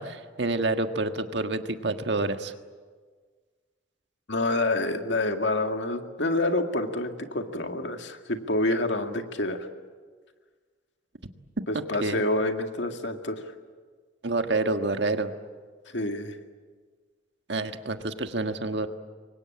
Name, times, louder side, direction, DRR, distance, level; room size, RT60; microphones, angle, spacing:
voice 1, 0.0-2.5 12.0-12.2 14.2-15.3 17.5-18.9, right 2 dB, 65° right, 7 dB, 1.6 m, -28 dB
voice 2, 4.3-9.7 11.7-13.4 15.9-16.4, left 2 dB, 70° left, 5 dB, 2.1 m, -27 dB
28.0 x 23.5 x 8.7 m, 1.5 s
head